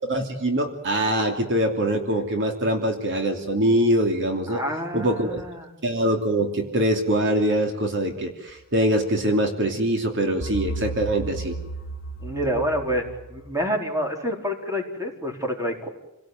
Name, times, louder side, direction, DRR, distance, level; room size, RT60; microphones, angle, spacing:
voice 1, 0.0-4.6 4.9-5.4 5.8-11.6, right 1 dB, 55° right, 4 dB, 2.9 m, -23 dB
voice 2, 4.5-5.7 12.2-15.9, equal, 15° right, 2 dB, 4.4 m, -28 dB
sound 1, 10.4-13.5, right 2 dB, 60° left, 1.8 m, -34 dB
29.0 x 18.0 x 9.1 m, 0.97 s
head